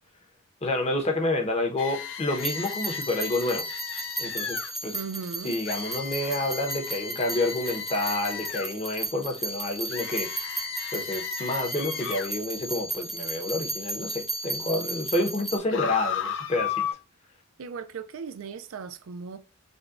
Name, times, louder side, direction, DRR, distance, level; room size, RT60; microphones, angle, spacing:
voice 1, 0.6-3.6 4.2-5.0 5.4-10.3 10.9-16.9, left 2 dB, 30° left, 0.8 m, -29 dB
sound 1, 1.8-4.7 5.7-8.7 9.9-12.3 15.7-16.9, left 7 dB, 55° left, 0.6 m, -34 dB
sound 2, 2.4-15.6, right 2 dB, ahead, 0.6 m, -35 dB
voice 2, 4.9-5.5 17.6-19.4, right 5 dB, 60° right, 0.4 m, -37 dB
5.2 x 2.2 x 2.4 m
head